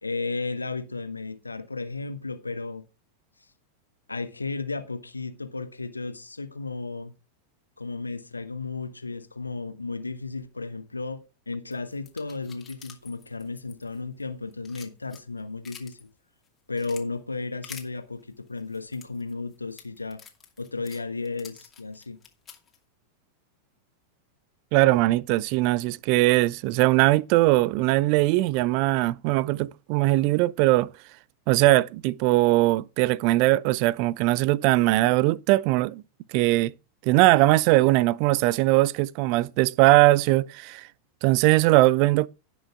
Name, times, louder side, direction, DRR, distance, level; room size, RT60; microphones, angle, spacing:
voice 1, 0.0-2.8 4.1-7.1 7.8-16.0 16.7-20.2 20.6-22.2, left 3 dB, 80° left, 1.3 m, -34 dB
sound 1, 11.7-14.2 14.5-16.0 16.4-17.0 17.6-17.9 18.6-22.8, left 7 dB, 20° left, 2.5 m, -47 dB
voice 2, 24.7-30.9 31.5-36.0 36.3-36.7 37.0-40.9 41.2-42.3, right 18 dB, 45° right, 0.4 m, -20 dB
17.5 x 6.2 x 3.6 m
figure-of-eight pair, 90°, 0 cm